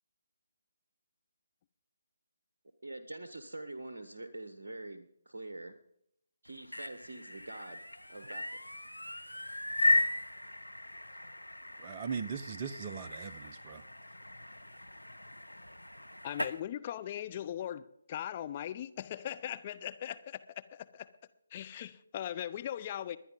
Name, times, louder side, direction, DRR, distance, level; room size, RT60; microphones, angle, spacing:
voice 1, 2.8-5.7 6.4-7.8 8.1-8.5, right 2 dB, 60° right, 1.2 m, -45 dB
sound 1, 6.5-16.6, left 2 dB, 85° left, 0.8 m, -36 dB
voice 2, 11.8-13.8, right 6 dB, 30° right, 0.7 m, -39 dB
voice 3, 16.2-21.1 21.5-23.2, left 10 dB, 30° left, 0.6 m, -39 dB
20.5 x 10.0 x 3.7 m
figure-of-eight pair, 145°, 0 cm